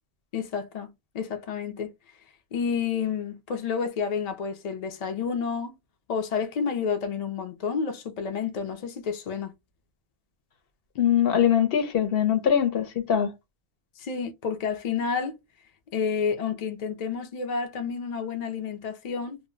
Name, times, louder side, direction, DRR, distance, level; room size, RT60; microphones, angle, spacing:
voice 1, 0.3-0.9 1.1-1.9 2.5-5.7 6.1-9.5 14.0-15.4 15.9-19.4, left 6 dB, 55° left, 0.5 m, -30 dB
voice 2, 11.0-13.3, left 9 dB, 70° left, 0.8 m, -22 dB
2.1 x 2.0 x 3.6 m
omnidirectional pair, 1.1 m